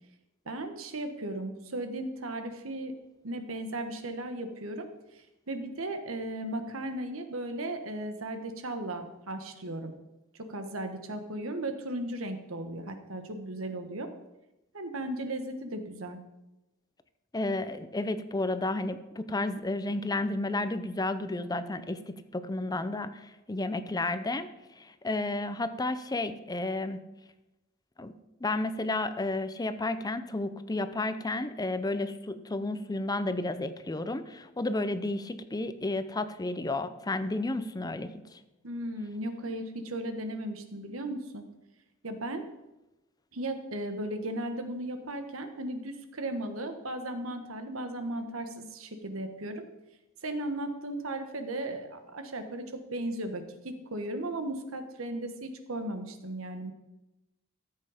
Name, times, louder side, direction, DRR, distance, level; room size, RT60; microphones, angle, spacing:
voice 1, 0.4-2.9 3.2-9.9 10.4-14.1 14.7-16.2 38.6-41.4 42.0-42.5 43.3-49.6 50.2-56.7, right 1 dB, 85° right, 7 dB, 1.4 m, -36 dB
voice 2, 17.3-24.5 24.8-27.0 28.0-28.1 28.4-38.4, left 2 dB, 20° left, 12 dB, 0.6 m, -32 dB
14.0 x 7.6 x 5.0 m, 0.98 s
head